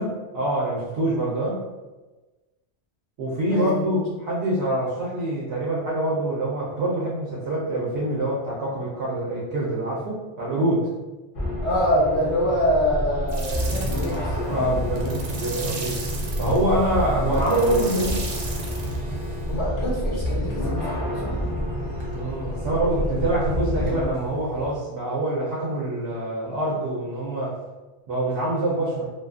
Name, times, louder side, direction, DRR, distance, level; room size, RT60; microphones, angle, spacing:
voice 1, 0.0-1.6 3.2-10.9 14.5-16.0 16.4-18.2 22.1-27.6 28.1-29.1, right 1 dB, 65° right, -6 dB, 0.8 m, -25 dB
voice 2, 3.5-3.9 11.6-14.4 19.2-21.4, equal, 75° left, -5 dB, 1.0 m, -25 dB
sound 1, 11.3-24.1, equal, 40° left, 0.5 m, -28 dB
sound 2, 13.3-19.6, right 3 dB, 90° right, 0.9 m, -35 dB
sound 3, 18.4-24.8, right 2 dB, 45° right, 0.3 m, -40 dB
2.5 x 2.3 x 2.4 m, 1.2 s
omnidirectional pair, 1.2 m